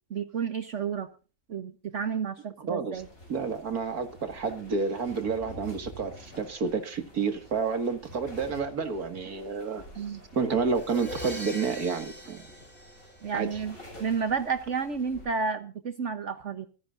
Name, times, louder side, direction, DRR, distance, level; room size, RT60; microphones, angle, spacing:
voice 1, 0.1-1.1 1.5-3.1 9.9-10.2 13.2-16.7, right 6 dB, 55° right, 1.2 m, -31 dB
voice 2, 2.7-3.0 3.3-10.0 10.3-12.5 13.3-13.6, right 5 dB, 75° right, 2.5 m, -30 dB
sound 1, 2.9-15.3, left 1 dB, 65° left, 7.7 m, -48 dB
sound 2, 10.7-13.6, equal, 5° left, 4.6 m, -42 dB
25.0 x 11.0 x 2.6 m
omnidirectional pair, 1.6 m